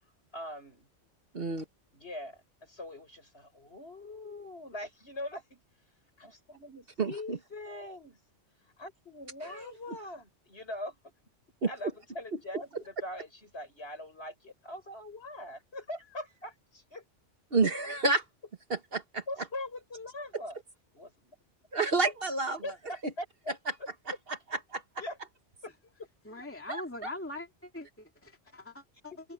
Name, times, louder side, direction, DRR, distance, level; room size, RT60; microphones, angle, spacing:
voice 1, 0.3-0.9 1.9-5.6 6.2-8.2 8.8-11.1 11.6-17.0 19.3-20.6 20.9-21.4 22.6-23.6 24.1-24.2 25.0-25.2 25.6-25.7 26.0-26.4 29.1-29.2, left 1 dB, 60° left, 7.5 m, -42 dB
voice 2, 1.3-1.6 7.0-7.4 9.5-9.7 11.6-11.7 17.5-18.2 18.7-19.2 21.7-22.6 26.7-27.1, right 3 dB, 55° right, 1.6 m, -29 dB
voice 3, 26.2-29.1, left 2 dB, 10° left, 2.6 m, -42 dB
omnidirectional pair, 1.2 m